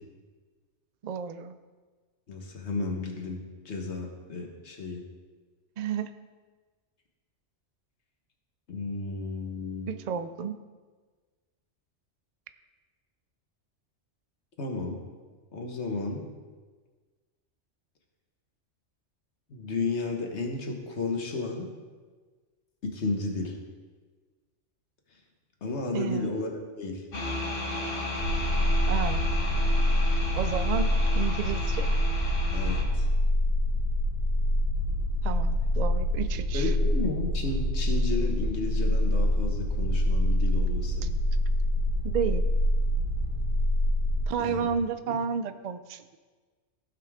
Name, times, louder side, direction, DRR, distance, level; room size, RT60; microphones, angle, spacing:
voice 1, 1.0-1.5 5.8-6.1 9.9-10.5 25.9-26.3 28.9-29.3 30.4-31.9 35.2-36.7 42.0-42.4 44.3-46.2, right 6 dB, 70° right, 11 dB, 0.4 m, -31 dB
voice 2, 2.3-5.0 8.7-9.9 14.6-15.0 15.5-16.2 19.5-21.7 22.8-23.6 25.6-27.1 32.5-33.1 36.5-41.1 44.4-44.7, left 3 dB, 65° left, 2 dB, 1.6 m, -33 dB
sound 1, 27.1-32.8, left 2 dB, 80° left, 1.9 m, -34 dB
sound 2, 28.2-44.3, left 1 dB, 40° left, 2.1 m, -26 dB
15.5 x 5.7 x 3.6 m, 1.4 s
omnidirectional pair, 1.3 m